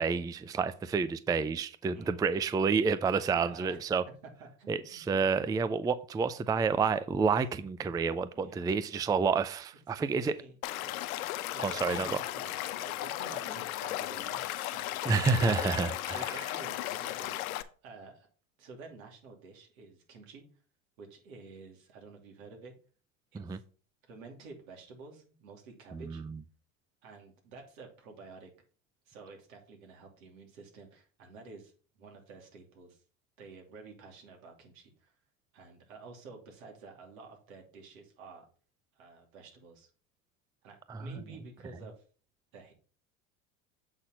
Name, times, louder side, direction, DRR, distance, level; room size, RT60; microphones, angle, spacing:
voice 1, 0.0-4.0 4.7-10.3 11.6-12.1 15.1-16.3 23.5-23.6 25.9-26.4 40.9-41.2, right 5 dB, 10° right, 0.4 m, -29 dB
voice 2, 3.3-3.8 4.4-5.4 6.5-6.6 8.3-8.7 10.0-11.0 11.5-15.1 15.4-15.8 16.1-17.5 17.8-18.3 18.6-20.4 21.0-22.7 23.3-23.6 24.0-26.2 27.0-28.5 29.1-31.7 32.0-33.0 33.4-35.2 35.5-38.5 38.9-39.9 40.6-42.0 42.5-42.7, right 4 dB, 80° right, 2.9 m, -50 dB
Stream / Liquid, 10.6-17.6, left 15 dB, 85° left, 0.8 m, -36 dB
7.9 x 4.2 x 5.8 m
hypercardioid pair, 90°, 41 cm